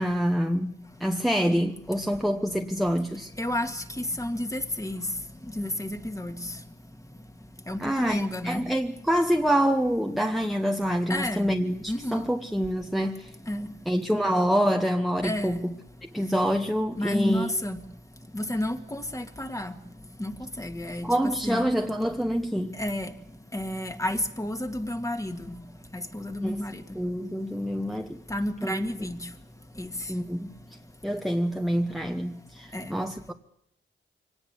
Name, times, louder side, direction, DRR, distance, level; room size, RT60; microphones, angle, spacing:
voice 1, 0.0-3.3 7.8-13.3 13.9-15.7 16.1-17.5 21.0-22.8 26.4-26.6 26.9-28.2 28.6-28.8 30.1-30.5 31.0-33.3, equal, ahead, 1.1 m, -26 dB
voice 2, 3.4-5.0 5.6-6.4 7.7-8.6 11.1-11.5 11.9-12.2 13.5-13.7 15.2-15.6 17.0-17.8 18.3-19.7 20.2-20.3 20.6-21.1 21.4-21.6 22.8-23.1 23.5-25.4 25.9-26.8 28.3-29.2 29.8-29.9 32.7-32.9, left 1 dB, 15° left, 2.0 m, -31 dB
24.0 x 19.0 x 8.2 m
wide cardioid pair, 95°, 21 cm